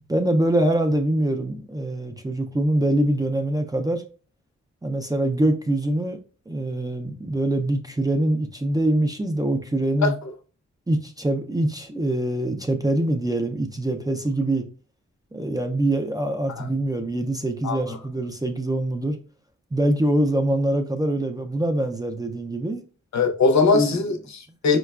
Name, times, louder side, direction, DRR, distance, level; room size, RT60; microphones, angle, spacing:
voice 1, 0.1-4.0 4.8-6.2 6.5-10.1 10.9-14.6 15.3-19.2 19.7-22.8 23.7-24.0, right 1 dB, 15° right, 0.3 m, -24 dB
voice 2, 17.6-18.0 23.1-24.8, left 4 dB, 65° left, 0.6 m, -21 dB
4.7 x 2.2 x 2.2 m
wide cardioid pair, 110°, 29 cm